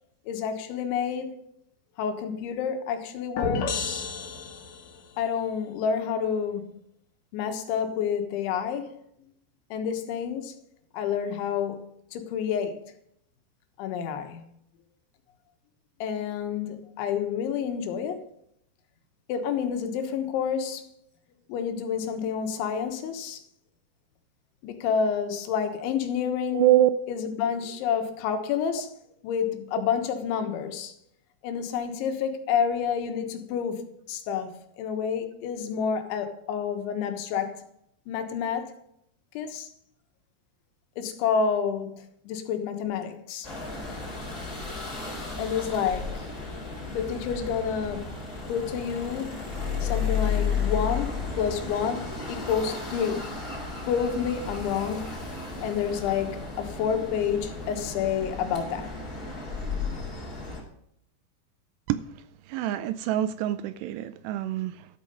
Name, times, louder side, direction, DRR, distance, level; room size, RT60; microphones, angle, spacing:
voice 1, 0.3-1.3 2.0-4.0 5.2-6.7 7.3-8.9 9.7-10.5 10.9-11.9 12.1-12.8 13.8-14.4 16.0-18.2 19.3-20.9 21.5-23.4 24.6-26.7 27.1-28.9 29.2-30.9 31.4-37.6 38.1-38.7 39.4-39.7 41.0-43.5 45.4-46.3 46.9-48.2 48.5-49.5 49.8-53.3 53.9-55.1 55.6-58.9, left 7 dB, 90° left, 3.7 m, -29 dB
sound 1, 3.4-5.1, left 5 dB, 60° left, 2.6 m, -31 dB
voice 2, 26.5-26.9 61.9-62.0 62.5-64.9, right 13 dB, 80° right, 2.5 m, -25 dB
sound 2, 43.4-60.6, left 5 dB, 20° left, 3.9 m, -33 dB
12.5 x 8.6 x 5.3 m
omnidirectional pair, 5.2 m